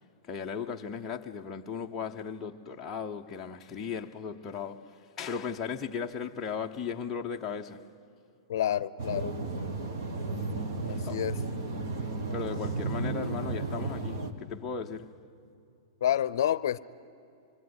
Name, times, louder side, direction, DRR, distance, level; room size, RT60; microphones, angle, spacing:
voice 1, 0.3-7.9 10.9-11.2 12.0-15.2, left 6 dB, 10° left, 0.7 m, -37 dB
voice 2, 8.5-9.3 10.9-11.4 16.0-16.8, left 11 dB, 60° left, 0.6 m, -28 dB
sound 1, 9.0-14.3, right 3 dB, 50° right, 1.8 m, -33 dB
25.0 x 23.0 x 9.5 m
supercardioid pair, 180°, 2 cm